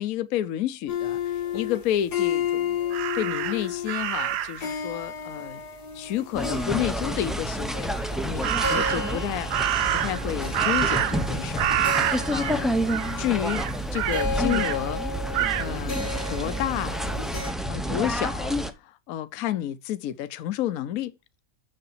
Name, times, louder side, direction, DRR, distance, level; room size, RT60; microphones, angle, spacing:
voice 1, 0.0-5.6 5.9-9.5 9.9-11.7 12.0-12.8 13.2-13.6 13.9-16.0 16.3-17.0 17.7-21.1, left 12 dB, 65° left, 1.1 m, -30 dB
sound 1, 0.9-17.5, left 6 dB, 90° left, 2.2 m, -33 dB
Crow, 2.9-4.7 8.4-9.2 9.5-11.3 11.6-12.6 12.9-13.1 13.5-14.8 15.3-15.7, right 11 dB, 90° right, 1.3 m, -27 dB
sound 2, 6.3-18.7, equal, ahead, 0.4 m, -29 dB
6.7 x 6.7 x 5.6 m
omnidirectional pair, 1.7 m